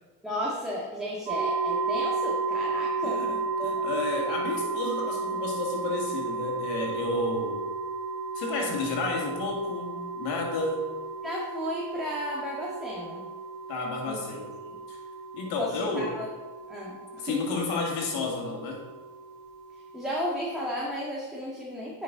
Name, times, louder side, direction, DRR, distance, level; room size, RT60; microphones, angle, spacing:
voice 1, 0.2-3.3 3.6-4.4 11.2-13.3 14.0-14.4 14.6-14.8 15.6-16.3 16.7-17.6 19.9-22.0, equal, ahead, -6 dB, 1.9 m, -34 dB
sound 1, 1.3-20.9, right 4 dB, 85° right, 2.5 m, -34 dB
voice 2, 3.0-7.7 8.3-10.8 13.7-14.5 14.9-15.0 15.3-16.1 17.2-18.9, left 3 dB, 75° left, 0 dB, 2.2 m, -31 dB
9.3 x 5.4 x 4.0 m, 1.2 s
supercardioid pair, 75°, 45 cm